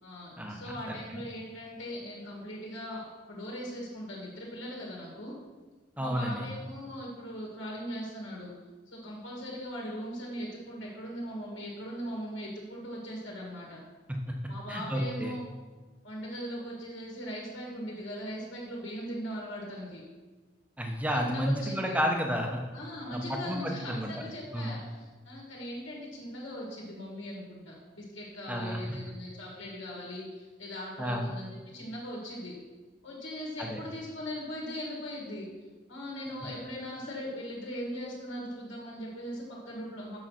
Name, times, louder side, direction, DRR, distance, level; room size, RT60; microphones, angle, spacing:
voice 1, 0.0-5.3 6.0-8.5 8.9-13.8 14.5-15.4 16.0-20.0 21.1-22.0 22.7-32.6 33.0-35.5 35.9-40.2, equal, 80° left, -4 dB, 2.1 m, -39 dB
voice 2, 0.9-1.2 6.0-6.4 14.7-15.3 20.8-22.6 23.1-24.1 24.5-24.7 28.5-28.8 31.0-31.3 33.6-33.8, equal, 5° right, 2 dB, 0.9 m, -31 dB
7.6 x 5.7 x 5.8 m, 1.3 s
head